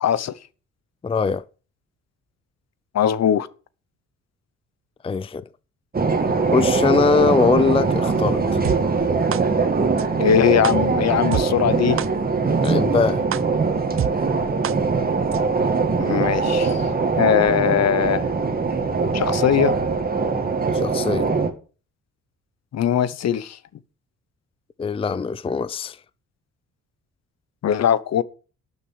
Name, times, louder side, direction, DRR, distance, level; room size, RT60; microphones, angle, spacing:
voice 1, 0.0-0.3 2.9-3.5 10.2-12.0 16.0-16.8 17.2-18.3 19.1-19.7 22.7-23.6 27.6-28.2, left 9 dB, 60° left, 1.0 m, -20 dB
voice 2, 1.0-1.4 5.0-5.4 6.5-8.6 12.6-13.2 20.7-21.3 24.8-26.0, left 5 dB, 20° left, 0.5 m, -21 dB
sound 1, 5.9-21.5, right 4 dB, 30° right, 2.2 m, -22 dB
sound 2, 8.6-8.8 9.3-9.4 10.0-10.1 10.6-10.7 11.3-11.4 12.0-12.1 12.6-12.7 13.3-13.4 14.0-14.1 14.6-14.7 15.3-15.4, right 10 dB, 45° right, 0.6 m, -25 dB
12.0 x 6.8 x 6.4 m
cardioid pair, 90°, 30 cm